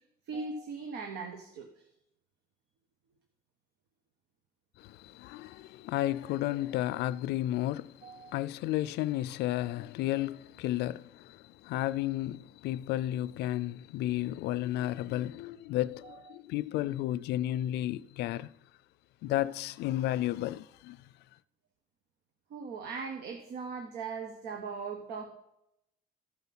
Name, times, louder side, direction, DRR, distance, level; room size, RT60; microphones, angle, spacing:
voice 1, 0.3-1.8 8.0-8.3 16.0-16.4 22.5-25.3, right 4 dB, 75° right, 1.2 m, -39 dB
voice 2, 4.8-18.5 19.2-21.0, left 14 dB, 80° left, 0.4 m, -33 dB
14.5 x 5.6 x 6.0 m
cardioid pair, 110°, 17 cm